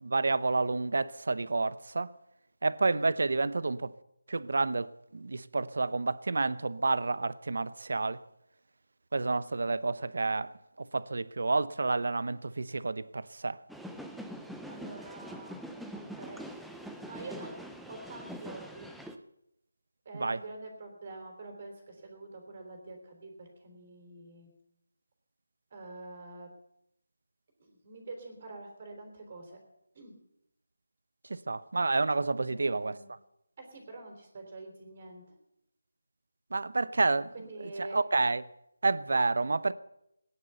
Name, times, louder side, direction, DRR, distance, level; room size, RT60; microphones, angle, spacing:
voice 1, 0.0-2.1 2.6-3.9 4.3-8.2 9.1-13.6 20.1-20.4 31.3-33.0 36.5-37.3 37.6-38.4 38.8-39.7, right 3 dB, 65° right, 0.8 m, -29 dB
sound 1, 13.7-19.2, equal, ahead, 0.6 m, -43 dB
voice 2, 14.7-15.7 15.9-16.4 17.0-17.5 17.9-18.9 20.1-24.5 25.7-26.5 27.6-29.6 29.9-30.1 32.3-33.1 33.6-35.2 37.3-38.0, right 2 dB, 35° right, 3.4 m, -46 dB
18.0 x 10.0 x 6.9 m
figure-of-eight pair, 165°, 0 cm